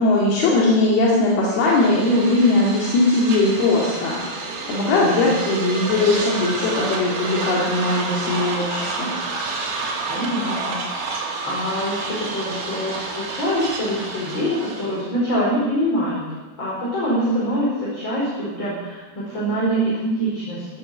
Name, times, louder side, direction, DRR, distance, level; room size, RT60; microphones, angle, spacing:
voice 1, 0.0-4.2 4.7-9.1, left 2 dB, 80° left, -4 dB, 4.3 m, -19 dB
sound 1, 1.5-15.1, right 3 dB, 85° right, 4.7 m, -29 dB
voice 2, 4.7-5.3 10.1-10.8 11.4-16.2 16.6-20.7, equal, 30° left, -6 dB, 5.1 m, -24 dB
16.0 x 11.0 x 7.3 m, 1.2 s
omnidirectional pair, 4.4 m